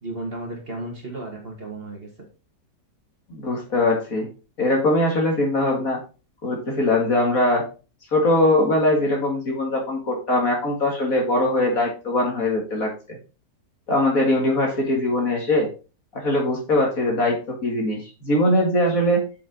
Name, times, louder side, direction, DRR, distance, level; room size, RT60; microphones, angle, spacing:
voice 1, 0.0-2.1, right 2 dB, 35° right, 0 dB, 1.9 m, -34 dB
voice 2, 3.3-4.3 4.6-6.0 6.4-7.7 8.1-13.2 13.9-15.7 16.1-19.2, left 1 dB, 50° left, 0 dB, 2.6 m, -21 dB
7.1 x 5.4 x 4.1 m, 0.33 s
omnidirectional pair, 1.9 m